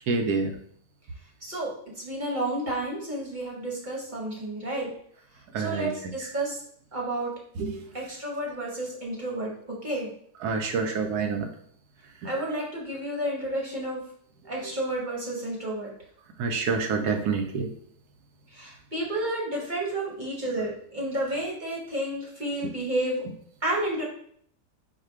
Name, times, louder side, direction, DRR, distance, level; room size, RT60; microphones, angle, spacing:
voice 1, 0.1-0.5 5.5-5.9 7.6-7.7 10.4-11.5 16.4-17.7, right 4 dB, 70° right, 5 dB, 1.1 m, -27 dB
voice 2, 1.4-4.9 5.6-6.6 6.9-7.3 7.9-10.1 12.2-14.0 14.5-15.9 18.5-23.2 23.6-24.0, right 1 dB, 35° right, -3 dB, 0.9 m, -31 dB
4.8 x 2.3 x 4.4 m, 0.63 s
omnidirectional pair, 1.9 m